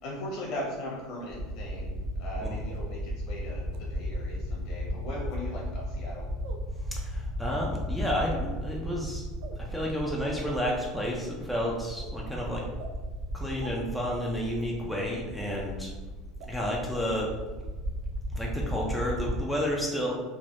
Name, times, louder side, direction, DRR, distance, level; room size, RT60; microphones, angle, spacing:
voice 1, 0.0-6.3, left 1 dB, 60° left, -2 dB, 1.0 m, -39 dB
sound 1, 1.3-19.4, equal, 15° right, 0.8 m, -36 dB
sound 2, 2.7-2.8 3.7-3.8 5.2-5.4 6.4-6.6 7.4-7.6 8.6-8.8 9.4-9.6 10.4-10.5 11.1-11.3 12.0-12.1 12.8-12.9 13.6-13.7 14.6-14.7 15.5-15.6 16.4-16.5 17.0-17.1, right 4 dB, 65° right, 0.3 m, -46 dB
voice 2, 6.8-9.2 9.6-12.7 13.3-15.9 16.5-17.3 18.3-20.1, equal, ahead, -3 dB, 0.5 m, -31 dB
3.3 x 2.1 x 2.5 m, 1.2 s
supercardioid pair, 125°, 0 cm